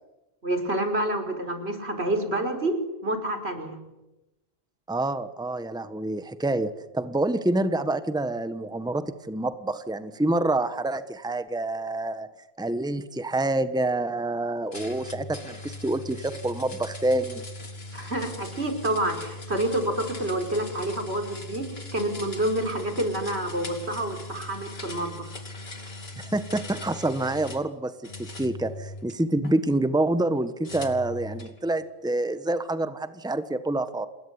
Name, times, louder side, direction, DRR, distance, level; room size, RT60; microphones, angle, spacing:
voice 1, 0.4-3.8 17.9-25.3, right 1 dB, 85° right, 6 dB, 5.1 m, -28 dB
voice 2, 4.9-12.3 12.6-17.4 26.2-34.1, right 2 dB, 5° right, 11 dB, 1.2 m, -27 dB
sound 1, 14.7-27.7 28.0-29.5 30.6-31.6, left 2 dB, 70° left, 3.1 m, -40 dB
28.5 x 21.0 x 9.7 m, 0.98 s
omnidirectional pair, 1.1 m